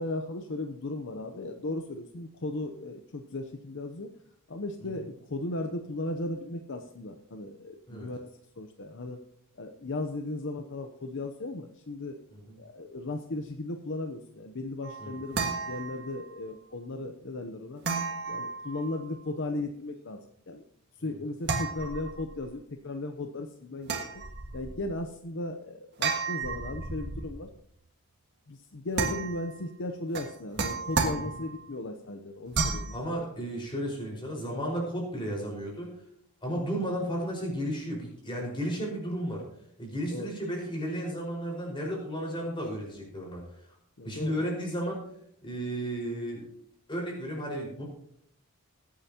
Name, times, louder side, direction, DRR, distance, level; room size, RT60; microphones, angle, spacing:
voice 1, 0.0-4.1 4.5-9.2 9.5-12.2 12.6-17.8 18.3-20.2 20.5-20.6 21.0-24.0 24.5-27.5 28.5-33.2 40.1-40.3 44.0-44.5, left 2 dB, 60° left, 6 dB, 0.8 m, -36 dB
sound 1, 14.8-16.4 17.8-19.2 21.4-22.5 23.8-24.9 26.0-27.4 28.9-29.6 30.1-31.7 32.5-33.0, right 4 dB, 50° right, 1.7 m, -33 dB
voice 2, 32.9-35.9 36.4-39.4 39.8-43.4 44.0-45.0 45.4-46.4 46.9-47.8, equal, 20° left, -1 dB, 5.0 m, -33 dB
21.0 x 8.8 x 2.9 m, 0.69 s
head